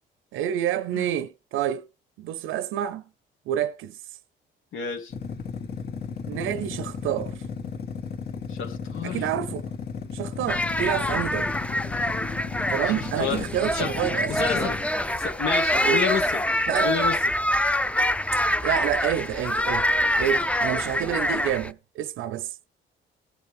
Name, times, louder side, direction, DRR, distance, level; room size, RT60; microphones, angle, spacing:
voice 1, 0.3-1.8 2.2-3.0 3.5-4.0 6.3-7.3 9.0-9.7 10.1-11.5 12.7-14.3 14.6-14.7 15.7-16.0 16.7-16.9 18.6-19.9 20.2-22.5, right 11 dB, 85° right, 0.6 m, -28 dB
voice 2, 4.7-5.1 8.5-9.3 12.9-13.5 13.7-13.9 14.3-14.8 15.1-16.4 16.8-17.3, left 6 dB, 80° left, 2.0 m, -30 dB
sound 1, 5.1-14.9, left 5 dB, 55° left, 2.1 m, -34 dB
sound 2, 10.5-21.7, left 1 dB, 5° left, 0.5 m, -25 dB
17.0 x 6.8 x 3.4 m
cardioid pair, 90°, 20 cm